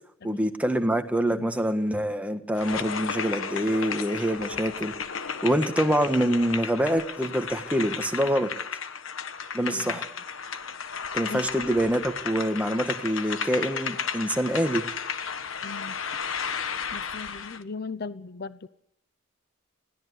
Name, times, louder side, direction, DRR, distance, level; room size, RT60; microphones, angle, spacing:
voice 1, 0.2-4.9 5.4-8.5 9.5-10.0 11.1-14.8, equal, 5° right, 6 dB, 1.5 m, -25 dB
sound 1, 2.6-17.6, left 6 dB, 70° left, 1.3 m, -34 dB
voice 2, 9.6-10.0 11.3-11.4 15.6-16.0 16.9-18.7, left 4 dB, 50° left, 15 dB, 0.7 m, -38 dB
21.0 x 16.5 x 8.2 m, 0.75 s
head